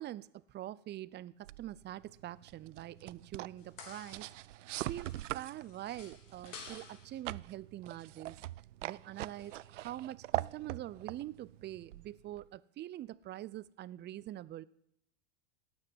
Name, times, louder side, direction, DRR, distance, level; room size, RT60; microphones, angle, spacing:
voice 1, 0.0-4.3 4.9-8.4 8.8-14.6, right 13 dB, 30° right, 20 dB, 0.7 m, -44 dB
sound 1, 1.4-12.6, right 15 dB, 80° right, 0.6 m, -43 dB
sound 2, 3.6-4.5 4.7-7.2 9.4-9.9 10.3-10.4, left 5 dB, 80° left, 3.6 m, -53 dB
15.0 x 9.7 x 9.8 m, 0.74 s
hypercardioid pair, 110°, 37 cm